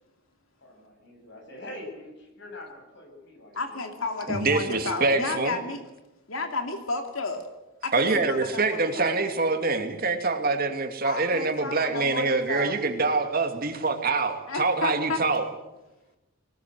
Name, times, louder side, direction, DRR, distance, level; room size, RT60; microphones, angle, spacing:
voice 1, 0.6-3.8, left 1 dB, 55° left, 1 dB, 7.3 m, -44 dB
voice 2, 3.5-5.8 6.3-7.4 7.8-9.1 11.0-12.8 14.5-15.2, left 3 dB, 75° left, 5 dB, 2.6 m, -32 dB
voice 3, 4.3-5.6 7.9-15.4, right 3 dB, 45° right, 5 dB, 2.7 m, -25 dB
23.5 x 20.5 x 7.9 m, 0.98 s
head